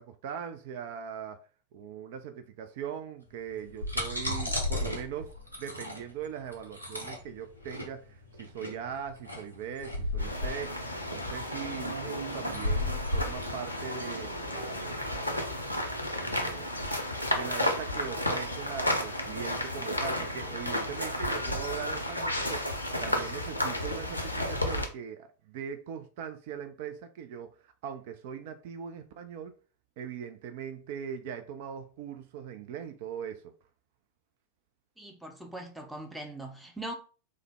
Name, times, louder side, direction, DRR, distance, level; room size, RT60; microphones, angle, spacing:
voice 1, 0.0-1.4 1.7-5.3 5.6-10.8 11.1-15.6 16.1-16.9 17.3-22.7 23.0-29.5 30.0-33.5, right 8 dB, 50° right, 0.3 m, -40 dB
sound 1, 3.5-14.9, left 1 dB, 90° right, 0.8 m, -35 dB
sound 2, 10.2-24.8, left 1 dB, 85° left, 0.6 m, -32 dB
voice 2, 35.0-36.9, right 1 dB, 5° right, 0.6 m, -41 dB
3.2 x 2.0 x 3.5 m
figure-of-eight pair, 90°, 0 cm